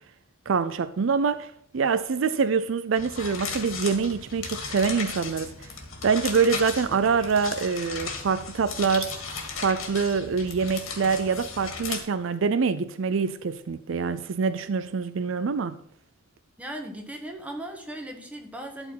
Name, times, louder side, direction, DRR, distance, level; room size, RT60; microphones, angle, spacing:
voice 1, 0.5-5.5 6.0-9.1 9.6-15.8, right 5 dB, 70° right, 0.4 m, -25 dB
sound 1, 3.0-12.0, left 5 dB, 90° left, 2.2 m, -36 dB
voice 2, 16.6-18.9, right 1 dB, 5° right, 1.5 m, -37 dB
12.0 x 4.4 x 5.7 m
head